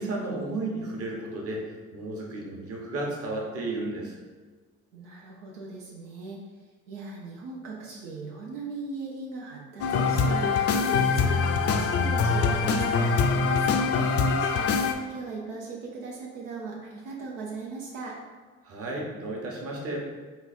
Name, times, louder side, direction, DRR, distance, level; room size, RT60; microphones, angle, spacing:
voice 1, 0.0-1.6 1.9-4.1 18.6-20.1, right 2 dB, 50° right, -2 dB, 1.2 m, -33 dB
voice 2, 4.9-6.4 6.9-18.2, right 4 dB, 90° right, -3 dB, 0.7 m, -39 dB
sound 1, 9.8-14.9, left 5 dB, 50° left, 0.5 m, -24 dB
3.9 x 2.4 x 4.2 m, 1.4 s
supercardioid pair, 80°, 30 cm